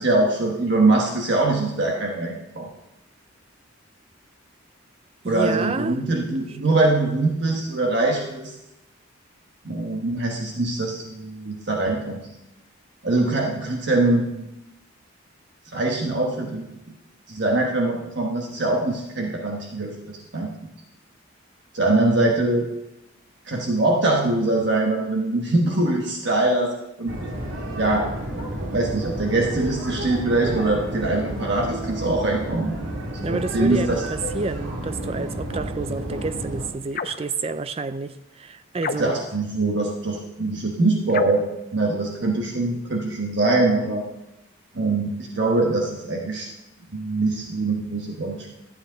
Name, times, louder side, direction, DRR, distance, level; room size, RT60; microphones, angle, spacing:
voice 1, 0.0-2.7 5.3-8.5 9.6-12.2 13.0-14.4 15.7-16.7 17.3-20.5 21.7-22.7 23.5-26.7 27.0-27.2 27.8-28.1 28.7-32.7 33.3-34.0 39.0-41.5 41.7-44.0 44.7-46.5 46.9-48.5, right 2 dB, 55° right, 1.2 m, -23 dB
voice 2, 5.2-6.0 6.7-6.8 33.2-39.2, right 3 dB, 30° right, 0.4 m, -29 dB
sound 1, 27.1-36.7, right 1 dB, 75° right, 1.9 m, -31 dB
sound 2, 36.9-37.3 38.8-39.4 41.1-41.5, left 6 dB, 45° left, 0.4 m, -31 dB
12.5 x 8.9 x 3.9 m
head